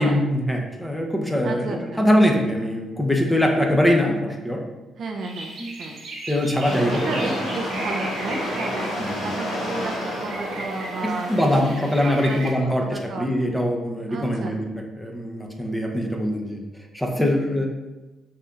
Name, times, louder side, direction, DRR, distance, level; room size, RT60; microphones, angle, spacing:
voice 1, 0.0-4.6 5.6-5.7 6.3-7.3 9.0-9.2 11.0-14.7 15.0-16.6 16.9-17.7, left 1 dB, 5° left, 1 dB, 0.6 m, -22 dB
voice 2, 1.4-2.0 5.0-5.5 5.8-6.0 7.0-13.3 14.1-14.6 17.3-17.7, right 3 dB, 55° right, 2 dB, 0.4 m, -33 dB
sound 1, 5.2-12.5, right 2 dB, 85° right, 1.3 m, -37 dB
sound 2, 6.6-11.7, equal, 90° left, 1.3 m, -30 dB
5.5 x 2.7 x 2.4 m, 1.1 s
cardioid pair, 90°, 0 cm